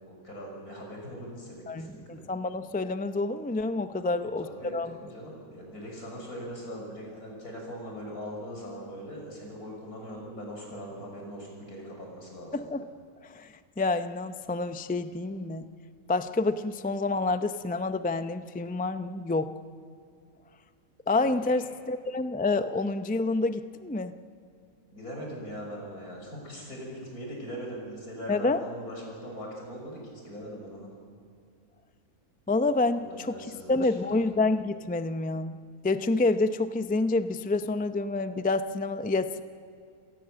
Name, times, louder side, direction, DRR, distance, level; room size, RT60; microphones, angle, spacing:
voice 1, 0.0-2.2 4.0-12.8 21.1-21.6 24.9-30.9 32.9-34.2, equal, 85° left, -1 dB, 6.7 m, -41 dB
voice 2, 1.7-5.0 12.5-12.8 13.2-15.6 16.1-19.5 21.1-24.2 28.3-28.6 32.5-33.3 33.7-35.6 35.8-39.4, left 3 dB, 15° left, 10 dB, 0.3 m, -28 dB
28.0 x 17.5 x 7.6 m, 2.3 s
omnidirectional pair, 1.5 m